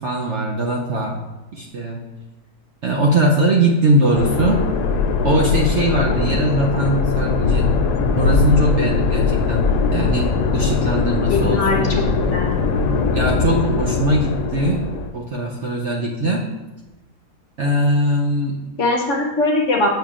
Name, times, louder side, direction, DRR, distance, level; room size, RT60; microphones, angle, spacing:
voice 1, 0.0-1.2 1.5-2.0 2.8-4.6 5.2-7.7 8.2-10.3 10.5-12.1 13.1-14.8 15.1-16.4 17.6-18.6, right 1 dB, 60° right, -2 dB, 0.8 m, -20 dB
sound 1, 4.2-15.1, left 5 dB, 75° left, 1.1 m, -20 dB
voice 2, 11.3-12.0 12.3-12.6 18.8-19.9, left 2 dB, 55° left, 0 dB, 1.0 m, -21 dB
8.7 x 5.6 x 2.4 m, 1.1 s
omnidirectional pair, 1.8 m